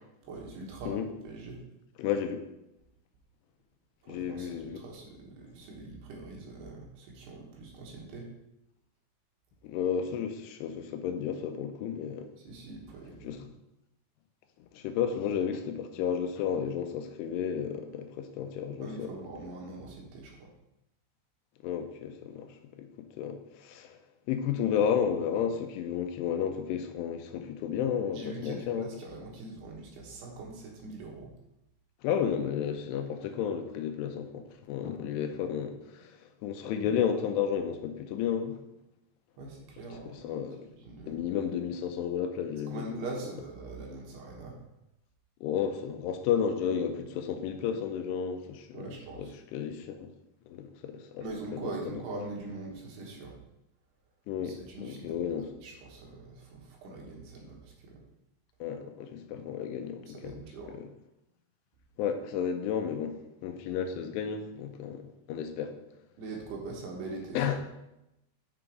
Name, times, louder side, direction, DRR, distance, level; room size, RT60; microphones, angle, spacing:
voice 1, 0.2-1.0 1.2-1.6 4.0-8.3 12.4-13.4 18.8-20.5 28.1-31.3 39.4-40.2 40.8-41.2 42.7-44.6 48.7-49.2 51.2-53.3 54.4-55.2 55.6-58.0 60.1-60.7 66.2-67.4, right 2 dB, 75° right, -1 dB, 3.3 m, -42 dB
voice 2, 2.0-2.4 4.1-4.8 9.6-12.3 13.2-13.4 14.7-19.2 21.6-24.0 24.3-28.9 32.0-36.1 36.4-38.6 40.1-40.7 41.1-42.9 45.4-50.1 50.5-51.3 51.5-52.0 54.3-55.5 58.6-60.4 60.7-60.9 62.0-65.8 67.3-67.6, left 8 dB, 90° left, 7 dB, 2.8 m, -32 dB
7.8 x 3.9 x 4.7 m, 0.88 s
omnidirectional pair, 4.8 m